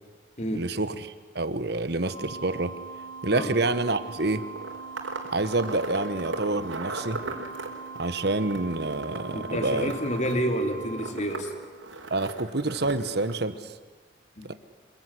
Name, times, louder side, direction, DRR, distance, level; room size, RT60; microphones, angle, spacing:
voice 1, 0.5-2.7 3.2-4.5 5.3-7.2 8.0-9.9 12.1-13.7 14.4-14.5, right 2 dB, 55° right, 12 dB, 1.3 m, -28 dB
sound 1, 2.0-11.1, right 4 dB, 20° left, 5.9 m, -41 dB
sound 2, 4.0-13.4, right 2 dB, 85° right, 4.3 m, -38 dB
voice 2, 9.3-11.5 14.4-14.5, equal, 35° left, 5 dB, 3.0 m, -29 dB
26.0 x 23.0 x 10.0 m, 1.4 s
head